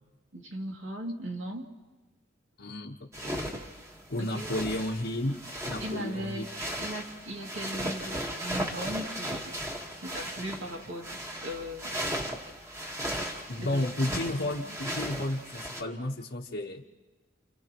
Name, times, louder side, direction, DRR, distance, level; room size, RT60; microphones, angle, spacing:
voice 1, 0.3-1.7 4.2-4.5 5.8-6.5 6.8-9.6 10.0-11.9 13.6-14.3 14.6-14.7, right 1 dB, 75° right, 0 dB, 2.6 m, -38 dB
voice 2, 2.6-3.5 4.1-6.5 7.8-7.9 13.5-16.8, left 1 dB, 65° left, -2 dB, 1.1 m, -33 dB
sound 1, 3.1-15.8, equal, 15° right, 1.5 m, -37 dB
30.0 x 29.0 x 3.0 m, 1.2 s
head